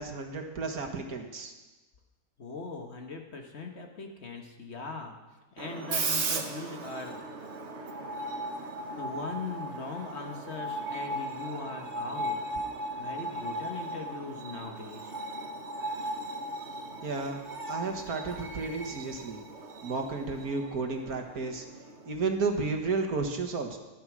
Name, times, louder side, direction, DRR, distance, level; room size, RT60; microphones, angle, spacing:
voice 1, 0.0-1.5 17.0-19.4 19.8-21.7 22.1-23.8, right 4 dB, 70° right, 4 dB, 2.0 m, -32 dB
voice 2, 2.4-5.2 5.5-7.2 9.0-12.6 13.0-15.1, left 4 dB, 45° left, 3 dB, 1.5 m, -40 dB
Screech, 5.6-22.2, right 2 dB, 50° right, 1.4 m, -37 dB
14.5 x 10.5 x 6.1 m, 1.1 s
omnidirectional pair, 1.7 m